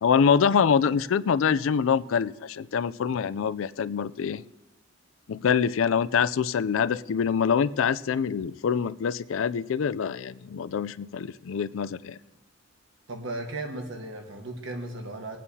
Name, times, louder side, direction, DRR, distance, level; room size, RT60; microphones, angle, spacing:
voice 1, 0.0-4.4 5.3-12.2, left 7 dB, 80° left, 17 dB, 0.4 m, -25 dB
voice 2, 13.1-15.4, right 2 dB, 75° right, 2 dB, 1.4 m, -36 dB
21.5 x 9.2 x 2.8 m, 1.1 s
head